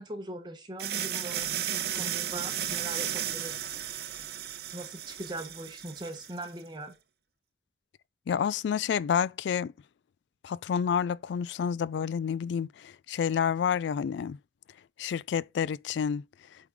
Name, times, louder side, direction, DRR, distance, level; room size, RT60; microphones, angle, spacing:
voice 1, 0.0-3.7 4.7-6.9, right 1 dB, 25° right, 0.8 m, -40 dB
sound 1, 0.8-6.5, right 10 dB, 60° right, 0.6 m, -34 dB
voice 2, 8.3-9.7 10.4-14.4 15.0-16.2, left 7 dB, 80° left, 0.3 m, -29 dB
8.3 x 3.8 x 4.7 m
head